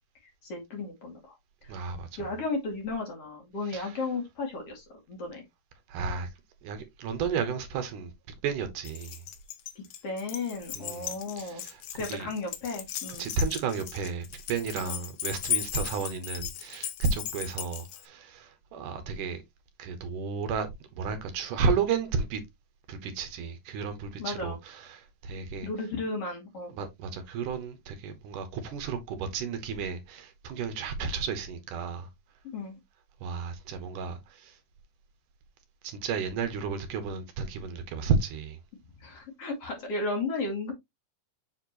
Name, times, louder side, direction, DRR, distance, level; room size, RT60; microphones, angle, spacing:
voice 1, 0.2-1.3 1.6-1.8 2.2-5.4 10.0-11.6 11.9-13.3 14.8-15.0 24.2-24.6 25.6-26.7 32.5-32.8 39.0-40.7, left 3 dB, 45° left, 3.2 m, -34 dB
voice 2, 1.7-2.1 3.7-3.9 5.9-6.3 6.6-8.1 8.4-9.2 10.8-11.1 11.4-11.8 12.1-12.3 13.2-19.4 19.8-20.7 20.9-22.4 22.9-25.7 26.8-32.1 33.2-34.6 35.8-38.6, right 5 dB, 75° right, 2.6 m, -32 dB
Keys jangling, 8.8-18.1, left 10 dB, 75° left, 1.4 m, -37 dB
7.6 x 4.3 x 3.0 m
omnidirectional pair, 3.8 m